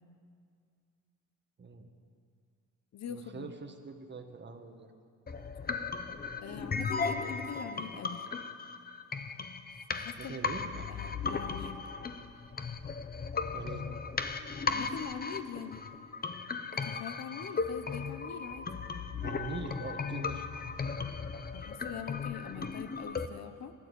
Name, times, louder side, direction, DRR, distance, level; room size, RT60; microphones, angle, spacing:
voice 1, 1.6-1.9 3.1-4.9 10.2-10.9 13.5-13.9 19.2-20.5, right 4 dB, 35° right, 6 dB, 1.6 m, -43 dB
voice 2, 2.9-3.5 6.4-8.2 9.9-10.4 10.9-11.9 14.7-15.8 16.8-18.7 21.5-23.7, left 8 dB, 60° left, 10 dB, 1.0 m, -43 dB
sound 1, 5.3-23.3, left 5 dB, 30° left, 0.9 m, -36 dB
13.5 x 12.0 x 8.4 m, 2.2 s
cardioid pair, 90°, 30 cm